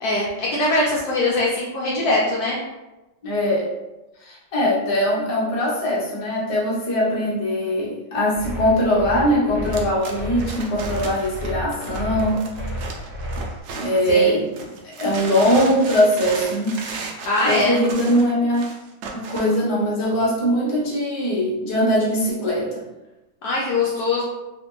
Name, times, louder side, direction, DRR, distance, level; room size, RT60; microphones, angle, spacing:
voice 1, 0.0-2.6 14.1-14.4 17.3-17.8 23.4-24.2, left 2 dB, 70° left, -5 dB, 0.9 m, -22 dB
voice 2, 3.2-3.7 4.2-12.4 13.7-14.5 15.0-16.9 17.4-18.7 19.1-22.8, equal, 40° left, -6 dB, 0.5 m, -21 dB
sound 1, 8.3-13.6, equal, 45° right, 0.9 m, -31 dB
sound 2, 9.7-14.2 14.5-19.6, right 4 dB, 75° right, 0.9 m, -35 dB
3.3 x 2.5 x 3.0 m, 1.0 s
omnidirectional pair, 2.1 m